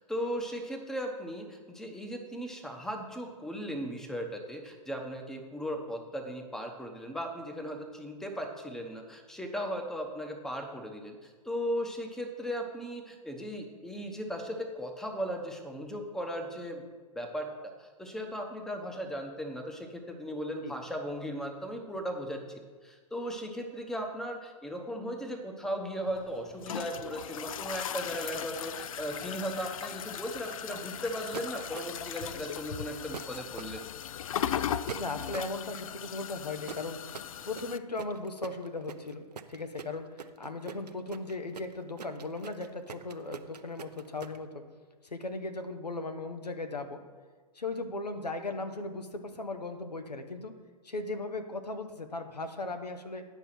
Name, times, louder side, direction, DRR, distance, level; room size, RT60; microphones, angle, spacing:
voice 1, 0.0-16.8 17.1-22.4 22.8-33.9, equal, ahead, 4 dB, 0.9 m, -37 dB
sound 1, 26.1-37.8, left 9 dB, 60° left, 0.4 m, -38 dB
sound 2, 31.3-32.1 33.1-33.7 34.9-35.6 36.7-44.4, right 6 dB, 80° right, 0.6 m, -43 dB
voice 2, 35.0-37.0 37.4-44.6 45.1-47.0 47.5-50.6 50.8-53.3, left 2 dB, 85° left, 7 dB, 1.0 m, -37 dB
9.5 x 5.5 x 5.9 m, 1.5 s
figure-of-eight pair, 115°, 20 cm